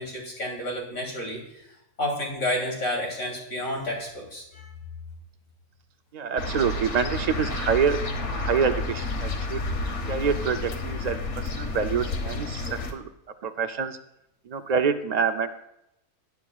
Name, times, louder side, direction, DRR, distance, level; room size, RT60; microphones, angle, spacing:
voice 1, 0.0-1.7 2.0-4.7, left 1 dB, 85° left, -2 dB, 3.5 m, -30 dB
voice 2, 6.1-8.0 8.3-9.6 10.1-11.2 11.6-13.1 13.4-14.0 14.5-15.6, right 6 dB, 80° right, 7 dB, 0.3 m, -26 dB
sound 1, 6.4-12.9, left 2 dB, 60° left, 1.3 m, -30 dB
19.5 x 9.3 x 2.3 m, 0.84 s
omnidirectional pair, 1.4 m